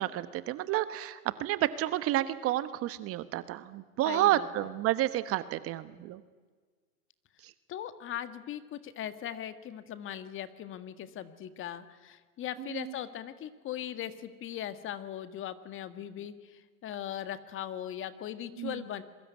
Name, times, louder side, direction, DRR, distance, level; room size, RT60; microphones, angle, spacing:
voice 1, 0.0-6.2 7.4-7.5 12.6-12.9 18.6-18.8, right 14 dB, 30° right, 14 dB, 1.2 m, -30 dB
voice 2, 4.0-4.5 7.7-19.0, left 11 dB, 25° left, 12 dB, 1.8 m, -39 dB
27.0 x 22.5 x 9.7 m, 1.5 s
hypercardioid pair, 120°, 44 cm